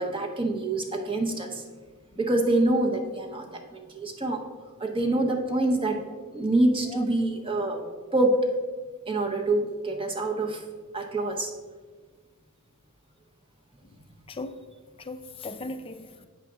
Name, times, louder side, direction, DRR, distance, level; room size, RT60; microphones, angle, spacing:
voice 1, 0.0-1.6 2.2-4.4 4.8-6.0 6.3-7.8 8.1-8.4 9.1-10.6 10.9-11.5, right 2 dB, 25° right, 0.7 m, -26 dB
voice 2, 14.3-14.7 15.0-16.2, left 2 dB, 25° left, 0.3 m, -38 dB
8.1 x 5.8 x 3.6 m
head